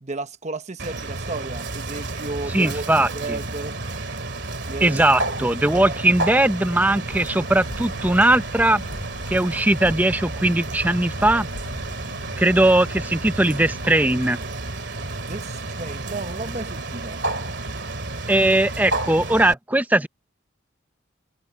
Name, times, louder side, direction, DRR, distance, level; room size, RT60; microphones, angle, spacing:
voice 1, 0.0-2.8 3.1-3.8 4.6-5.0 5.7-6.0 15.2-17.2 18.4-18.5, right 3 dB, 35° right, 1.0 m, -33 dB
Bird, 0.8-19.5, right 2 dB, 60° right, 2.5 m, -31 dB
voice 2, 2.5-3.4 4.8-8.8 9.3-11.5 12.4-14.4 18.3-20.1, right 1 dB, 10° right, 0.6 m, -19 dB
sound 1, 7.1-13.9, left 1 dB, 85° left, 7.1 m, -39 dB
head